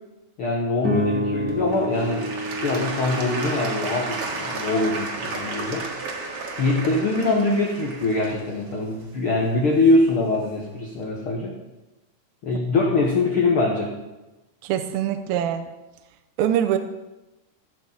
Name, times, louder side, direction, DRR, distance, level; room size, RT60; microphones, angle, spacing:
voice 1, 0.4-5.9 6.6-11.5 12.4-13.9, left 2 dB, 70° left, -1 dB, 1.2 m, -23 dB
sound 1, 0.8-5.3, equal, 5° right, 2.2 m, -30 dB
Applause / Crowd, 1.5-10.4 11.0-11.1, right 3 dB, 50° right, 2.3 m, -33 dB
voice 2, 14.7-15.7 16.4-16.8, right 10 dB, 80° right, 6 dB, 2.3 m, -23 dB
15.0 x 6.8 x 7.5 m, 1.0 s
omnidirectional pair, 4.6 m